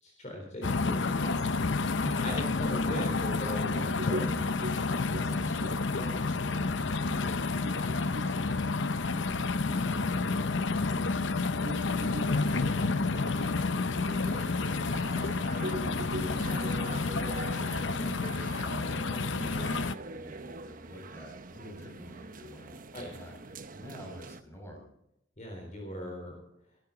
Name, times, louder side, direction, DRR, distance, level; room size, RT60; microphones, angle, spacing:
voice 1, 0.0-4.2 5.9-6.1 9.7-10.1 10.4-11.0 15.8-16.0 22.9-23.1 25.4-26.4, equal, 40° left, 1 dB, 3.9 m, -40 dB
sound 1, 0.6-19.9, left 3 dB, 70° left, 0.7 m, -30 dB
sound 2, 3.6-10.7 11.1-11.2 11.6-15.2 15.6-18.7, equal, 65° right, 2.3 m, -43 dB
voice 2, 4.2-4.6 4.9-9.3 11.7-15.6 15.9-18.4 19.3-24.9, equal, 15° left, 1 dB, 6.1 m, -48 dB
sound 3, 11.8-24.4, right 3 dB, 45° right, 0.9 m, -45 dB
19.5 x 12.5 x 4.0 m, 0.78 s
head